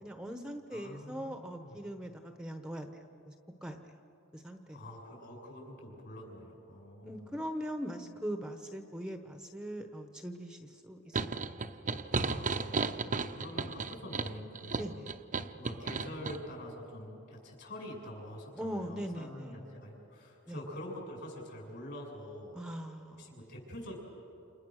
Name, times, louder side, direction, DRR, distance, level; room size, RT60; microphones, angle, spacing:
voice 1, 0.0-2.9 3.3-3.4 3.6-3.8 4.3-4.8 7.0-11.3 11.9-12.0 14.7-15.1 18.5-19.5 20.5-20.6 22.5-23.4, equal, 5° right, 6 dB, 1.0 m, -41 dB
voice 2, 0.7-1.8 4.7-7.4 12.1-15.1 15.5-22.6 23.2-23.9, left 1 dB, 55° left, 0 dB, 7.5 m, -46 dB
sound 1, 11.1-16.4, right 4 dB, 40° right, 0.8 m, -34 dB
29.0 x 28.5 x 6.5 m, 2.8 s
head